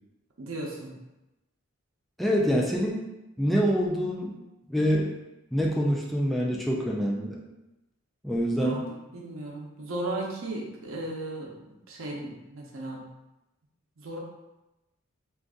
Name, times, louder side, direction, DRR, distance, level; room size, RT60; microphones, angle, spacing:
voice 1, 0.4-0.9 8.6-8.8 9.1-11.5 11.9-13.0 14.0-14.2, right 2 dB, 90° right, -1 dB, 0.7 m, -35 dB
voice 2, 2.2-3.0 3.4-4.3 4.7-5.1 5.5-7.4 8.2-8.8, equal, ahead, -3 dB, 0.3 m, -25 dB
2.6 x 2.4 x 3.5 m, 0.98 s
head